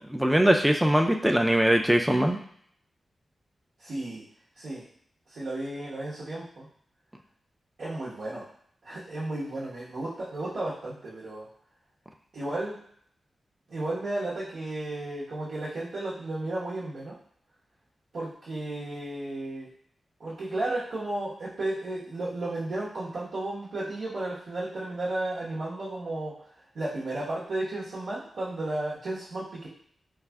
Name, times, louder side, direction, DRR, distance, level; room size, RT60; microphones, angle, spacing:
voice 1, 0.1-2.4, right 1 dB, 5° right, 3 dB, 0.3 m, -21 dB
voice 2, 3.8-4.2 4.6-4.8 5.3-6.6 7.8-8.4 8.8-11.5 12.3-12.8 13.7-17.2 18.1-19.7 20.2-26.3 26.7-29.7, right 2 dB, 80° right, -10 dB, 1.1 m, -33 dB
3.3 x 2.4 x 3.4 m, 0.63 s
cardioid pair, 75°, 0 cm